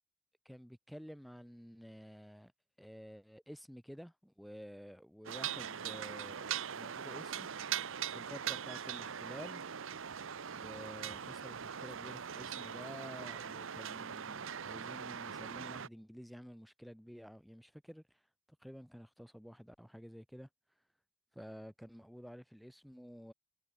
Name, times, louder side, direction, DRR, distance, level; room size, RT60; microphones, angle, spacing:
voice 1, 0.4-2.5 2.8-7.5 8.1-9.6 10.5-18.0 18.6-20.5 21.3-23.3, equal, ahead, 1.6 m, -51 dB
sound 1, 5.2-15.9, right 8 dB, 65° right, 0.8 m, -41 dB
head